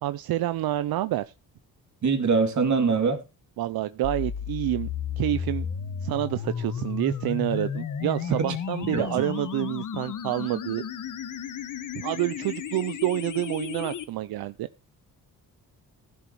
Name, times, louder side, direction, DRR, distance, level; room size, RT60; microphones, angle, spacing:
voice 1, 0.0-1.2 3.6-4.9 5.2-5.7 6.0-10.8 11.9-14.7, right 14 dB, 85° right, 0.6 m, -28 dB
voice 2, 2.0-3.2 8.3-8.5 8.9-9.1, right 5 dB, 55° right, 2.4 m, -23 dB
sound 1, 4.0-14.0, left 8 dB, 60° left, 1.3 m, -33 dB
15.0 x 7.2 x 4.6 m
cardioid pair, 110°, 36 cm